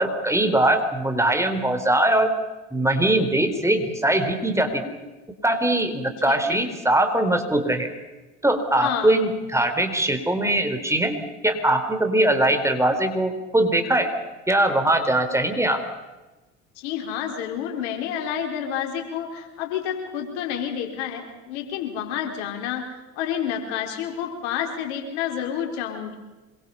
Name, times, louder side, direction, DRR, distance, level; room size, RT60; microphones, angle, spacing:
voice 1, 0.0-2.3 2.7-5.0 5.4-7.9 8.4-14.1 14.5-15.8, right 1 dB, 10° right, 6 dB, 4.2 m, -21 dB
voice 2, 6.2-6.6 8.8-9.1 16.8-22.8 23.2-26.2, left 9 dB, 75° left, 3 dB, 4.5 m, -29 dB
26.5 x 23.0 x 5.7 m, 1.1 s
hypercardioid pair, 65°, 35 cm